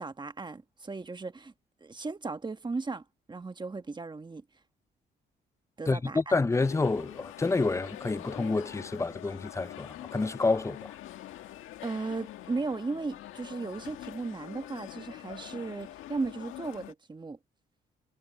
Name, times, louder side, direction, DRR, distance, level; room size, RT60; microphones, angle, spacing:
voice 1, 0.0-1.5 1.8-4.4 5.8-6.4 11.8-17.4, right 3 dB, 20° right, 1.4 m, -36 dB
voice 2, 5.9-10.9, left 3 dB, 15° left, 0.6 m, -28 dB
sound 1, 6.5-16.9, left 14 dB, 90° left, 1.8 m, -45 dB
cardioid pair, 90°, 20 cm